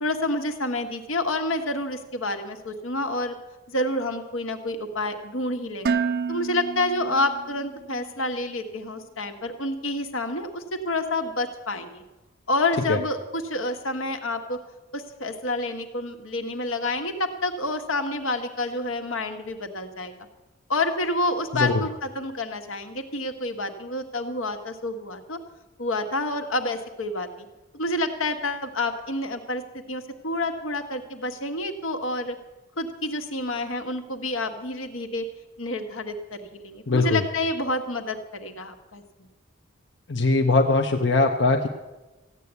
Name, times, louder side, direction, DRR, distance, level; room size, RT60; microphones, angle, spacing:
voice 1, 0.0-3.3 3.7-6.0 6.3-12.0 12.5-14.6 14.9-20.1 20.7-25.4 25.8-27.5 27.7-29.6 29.9-32.4 32.8-35.2 35.6-39.0, left 2 dB, 80° left, 5 dB, 1.6 m, -28 dB
Dishes pots and pans, 5.9-7.9, right 5 dB, 45° right, 0.4 m, -29 dB
voice 2, 36.9-37.2 40.1-41.7, left 3 dB, 55° left, 3 dB, 0.8 m, -21 dB
15.0 x 9.4 x 8.2 m, 1.1 s
head